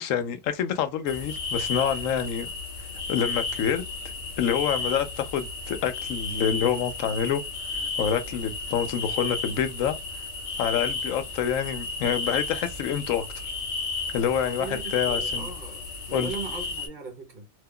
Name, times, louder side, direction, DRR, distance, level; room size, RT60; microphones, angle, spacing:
voice 1, 0.0-2.5 3.1-3.8 4.4-7.4 8.0-10.0 10.6-13.3 14.1-15.5 16.1-16.3, left 8 dB, 90° left, 1.0 m, -27 dB
sound 1, 1.1-16.9, left 3 dB, 65° left, 1.2 m, -33 dB
voice 2, 14.4-17.5, right 4 dB, 45° right, 0.7 m, -39 dB
2.8 x 2.2 x 3.5 m
omnidirectional pair, 1.3 m